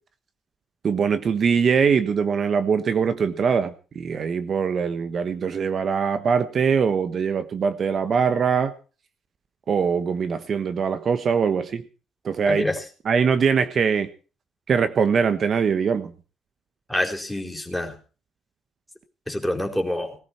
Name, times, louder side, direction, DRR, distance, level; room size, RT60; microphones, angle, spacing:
voice 1, 0.8-8.7 9.7-11.8 12.2-12.6 13.1-14.1 14.7-16.1, right 6 dB, 50° right, 11 dB, 1.3 m, -22 dB
voice 2, 12.4-12.8 16.9-18.0 19.3-20.2, left 1 dB, ahead, 3 dB, 4.4 m, -26 dB
19.5 x 13.5 x 4.5 m, 0.37 s
cardioid pair, 90°, 0 cm